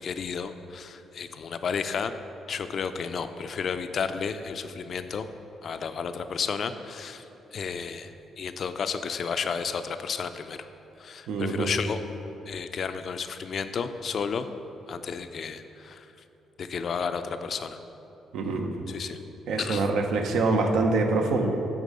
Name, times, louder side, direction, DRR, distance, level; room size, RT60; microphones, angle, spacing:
voice 1, 0.0-2.1 2.5-5.3 5.6-7.2 7.5-8.1 8.4-10.6 11.0-12.0 12.5-14.5 14.9-16.0 16.6-17.8 18.9-19.2 19.6-19.8, left 6 dB, 55° left, 10 dB, 0.4 m, -32 dB
voice 2, 11.3-11.7 18.3-18.9 19.5-21.5, right 3 dB, 80° right, 4 dB, 0.7 m, -25 dB
8.2 x 3.7 x 5.4 m, 2.9 s
cardioid pair, 90°, 0 cm